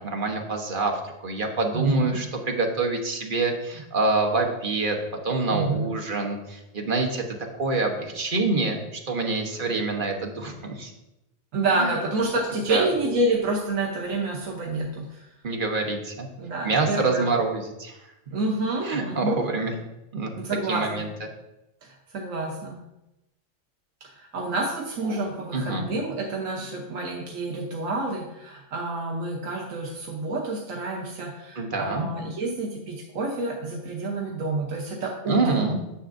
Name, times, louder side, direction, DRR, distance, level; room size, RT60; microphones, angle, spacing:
voice 1, 0.0-5.0 5.2-10.9 11.7-11.9 12.7-12.9 15.4-16.3 16.6-18.0 18.8-19.8 20.1-20.3 20.7-21.1 25.1-25.3 25.5-25.9 31.6-32.1 35.3-35.8, right 3 dB, 45° right, 3 dB, 1.2 m, -26 dB
voice 2, 1.7-2.2 5.5-5.9 11.5-15.3 16.4-17.3 18.3-19.4 20.4-21.1 21.8-22.8 24.0-35.7, right 2 dB, 85° right, 0 dB, 1.3 m, -28 dB
9.7 x 7.3 x 2.6 m, 0.92 s
omnidirectional pair, 1.3 m